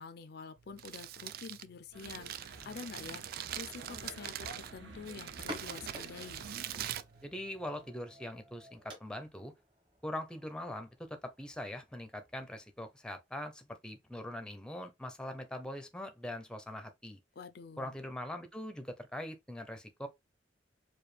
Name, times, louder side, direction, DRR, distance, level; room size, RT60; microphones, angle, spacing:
voice 1, 0.0-6.5 17.4-17.9, left 5 dB, 60° left, 0.4 m, -47 dB
Crumpling crinkling, 0.6-7.9, right 11 dB, 55° right, 0.3 m, -43 dB
sound 1, 1.9-6.9, right 2 dB, 70° right, 1.1 m, -50 dB
sound 2, 5.3-12.7, equal, 25° right, 1.1 m, -52 dB
voice 2, 7.2-9.5 10.0-17.2 17.8-20.1, left 1 dB, 5° left, 0.6 m, -42 dB
4.7 x 2.3 x 3.3 m
head